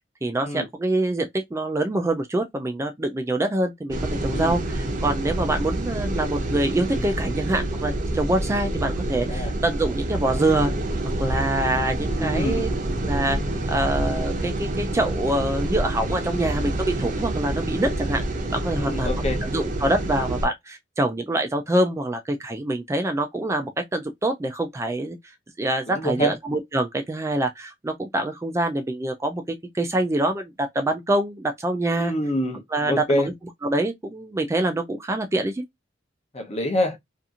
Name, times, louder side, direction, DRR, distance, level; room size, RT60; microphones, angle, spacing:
voice 1, 0.2-10.7 11.2-12.7 13.0-13.4 13.7-18.2 18.5-19.1 19.4-25.2 25.6-29.4 29.7-32.1 32.7-33.3 33.6-35.6, right 1 dB, 15° right, 0.3 m, -25 dB
sound 1, 3.9-20.5, right 1 dB, 45° right, 0.7 m, -27 dB
voice 2, 12.1-12.6 18.8-19.4 25.9-26.3 32.0-32.6 32.9-33.3 36.3-37.0, equal, 35° left, 0.7 m, -26 dB
2.8 x 2.5 x 2.4 m
head